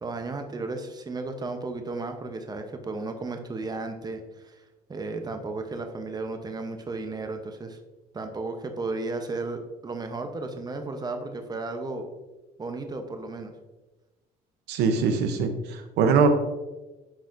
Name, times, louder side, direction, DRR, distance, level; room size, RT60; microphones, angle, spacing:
voice 1, 0.0-4.6 4.9-7.8 8.1-12.1 12.6-13.5, right 3 dB, 25° right, 6 dB, 0.8 m, -34 dB
voice 2, 14.7-16.3, right 5 dB, 85° right, 8 dB, 0.8 m, -22 dB
10.5 x 4.1 x 2.5 m, 1.1 s
cardioid pair, 110°, 17 cm